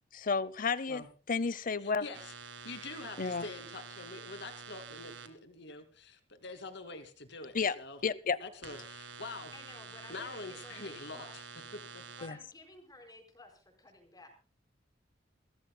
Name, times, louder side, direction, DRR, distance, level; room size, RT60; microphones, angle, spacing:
voice 1, 0.1-2.0 3.2-3.5 7.5-7.8 8.0-8.4 12.2-12.4, left 5 dB, 50° left, 19 dB, 0.8 m, -32 dB
voice 2, 1.8-2.3 2.6-8.0 8.4-9.5 10.1-11.4 11.9-12.0, left 3 dB, 65° left, 8 dB, 2.6 m, -45 dB
sound 1, 2.1-5.3 8.6-12.3, right 5 dB, 80° right, 2.1 m, -48 dB
voice 3, 9.5-11.3 12.2-14.3, left 2 dB, 20° left, 4 dB, 4.7 m, -54 dB
29.5 x 14.0 x 2.3 m, 0.34 s
head